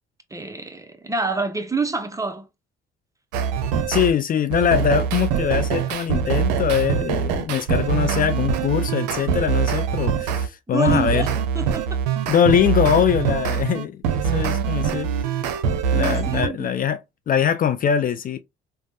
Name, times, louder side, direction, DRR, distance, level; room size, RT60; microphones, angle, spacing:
voice 1, 0.3-2.5 10.7-12.0 15.9-16.7, right 4 dB, 15° right, 0.7 m, -27 dB
sound 1, 3.3-4.1 4.5-10.5 10.9-16.5, right 7 dB, 90° right, 0.5 m, -23 dB
voice 2, 3.9-11.3 12.3-15.1 15.9-17.0 17.3-18.4, left 8 dB, 40° left, 0.4 m, -22 dB
3.3 x 2.2 x 2.7 m
supercardioid pair, 65°, 21 cm